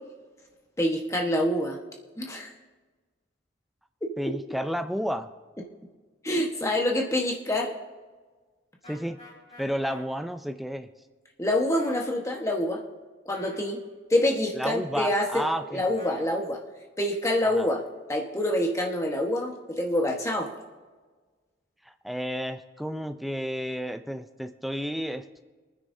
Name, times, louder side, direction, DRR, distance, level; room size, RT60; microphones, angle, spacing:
voice 1, 0.8-1.8 2.2-2.5 6.2-7.7 11.4-12.9 13.2-13.8 14.1-15.5 15.7-16.6 17.0-17.8 18.1-20.5, left 1 dB, 15° left, 0 dB, 1.2 m, -26 dB
voice 2, 4.2-5.3 8.9-9.2 9.6-10.9 14.5-15.8 17.5-17.7 21.9-25.4, equal, ahead, 7 dB, 0.5 m, -31 dB
sound 1, 8.8-10.0 11.8-12.1 13.3-13.7 16.0-16.3, left 2 dB, 35° left, 5.0 m, -47 dB
25.5 x 9.8 x 2.7 m, 1.4 s
head